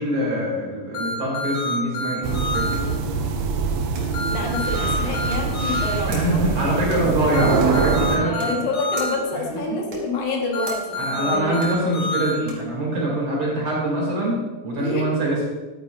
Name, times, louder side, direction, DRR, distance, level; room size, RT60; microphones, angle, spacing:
voice 1, 0.0-2.8 6.1-8.5 9.3-9.4 11.0-15.5, right 1 dB, 45° right, -4 dB, 3.3 m, -24 dB
sound 1, 0.9-2.7 4.1-5.9 7.3-9.1 10.5-12.3, left 2 dB, 50° left, 3.4 m, -27 dB
sound 2, 2.0-12.8, right 3 dB, 90° right, 3.2 m, -44 dB
sound 3, 2.2-8.2, right 5 dB, 75° right, 2.0 m, -24 dB
voice 2, 4.3-7.3 8.1-11.6 14.8-15.0, left 3 dB, 75° left, 0 dB, 2.8 m, -28 dB
11.0 x 9.2 x 2.5 m, 1.2 s
omnidirectional pair, 3.5 m